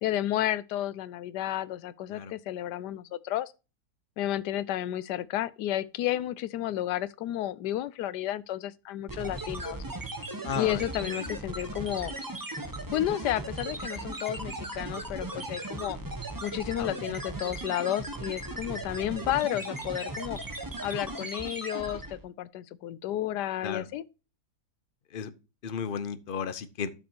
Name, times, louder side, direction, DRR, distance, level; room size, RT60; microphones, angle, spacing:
voice 1, 0.0-3.5 4.2-9.8 10.5-12.1 12.9-16.0 16.4-20.4 20.8-24.1, left 13 dB, 85° left, 1.2 m, -32 dB
sound 1, 9.1-22.2, right 2 dB, 15° right, 1.0 m, -37 dB
voice 2, 10.4-11.3 16.8-16.9 23.6-23.9 25.1-25.3 25.6-26.9, left 7 dB, 50° left, 0.6 m, -34 dB
12.0 x 6.0 x 2.9 m
omnidirectional pair, 1.8 m